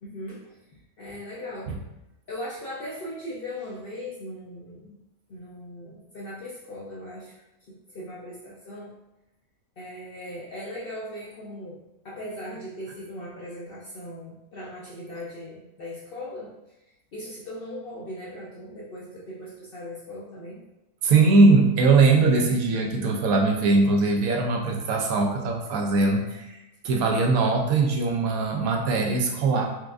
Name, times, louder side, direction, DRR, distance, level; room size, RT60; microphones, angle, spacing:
voice 1, 0.0-1.8 2.3-5.0 5.3-8.9 9.8-11.8 12.0-16.5 17.1-20.6 21.0-21.1, left 1 dB, 55° left, -6 dB, 0.6 m, -39 dB
voice 2, 21.0-26.6 26.8-29.6, right 3 dB, 75° right, 1 dB, 1.0 m, -21 dB
4.5 x 2.5 x 2.3 m, 0.95 s
omnidirectional pair, 1.5 m